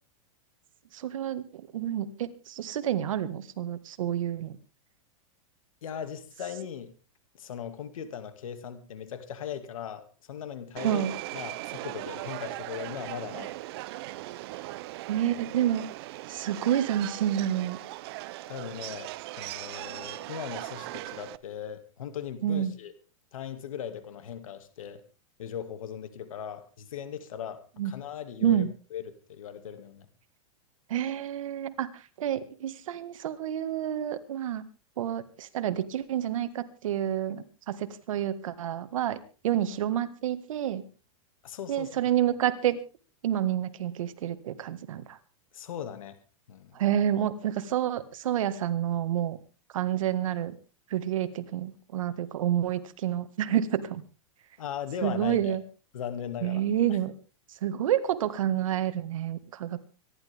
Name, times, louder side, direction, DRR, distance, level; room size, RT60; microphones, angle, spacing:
voice 1, 0.9-4.6 10.8-11.1 15.1-15.9 16.3-17.8 22.4-22.7 27.8-27.9 28.4-28.7 30.9-34.7 35.0-40.8 41.7-42.8 43.2-45.2 46.7-49.4 49.7-50.5 50.9-54.0 55.0-55.6 56.4-57.1 57.6-59.8, right 11 dB, 75° right, 11 dB, 1.7 m, -29 dB
voice 2, 5.8-6.9 7.3-11.0 11.3-13.5 18.5-22.9 23.3-25.0 25.4-28.6 28.9-30.1 41.4-41.9 45.5-46.2 46.5-46.8 54.6-55.6 55.9-56.6 56.9-57.0, left 8 dB, 80° left, 10 dB, 2.3 m, -38 dB
Subway metro underground, 10.8-21.4, right 18 dB, 50° right, 0.7 m, -39 dB
25.0 x 11.5 x 3.6 m, 0.34 s
supercardioid pair, 150°, 17 cm